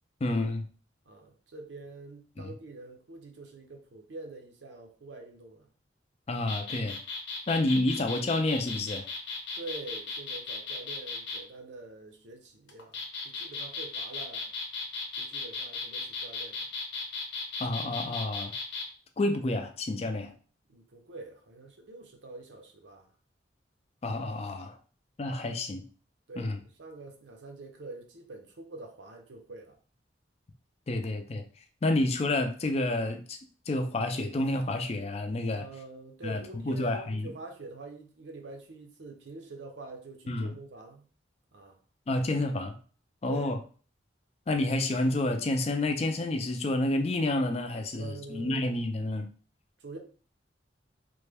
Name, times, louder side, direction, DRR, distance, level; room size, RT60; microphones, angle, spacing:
voice 1, 0.2-0.7 6.3-7.0 7.5-9.1 17.6-18.5 19.2-20.3 24.0-24.8 25.2-25.8 26.4-26.6 30.9-31.5 31.8-33.4 33.7-35.7 36.2-37.3 40.3-40.5 42.1-42.7 43.2-43.6 44.5-49.3, left 2 dB, 35° left, 0.4 m, -29 dB
voice 2, 1.0-5.7 9.6-14.5 15.2-16.7 20.7-23.1 26.3-29.8 35.6-41.0 41.5-41.8 43.3-43.5 47.9-48.7 49.8-50.0, right 3 dB, 85° right, 0.7 m, -45 dB
sound 1, 6.4-11.4 12.7-18.9, left 4 dB, 85° left, 0.8 m, -36 dB
3.2 x 2.2 x 3.3 m
head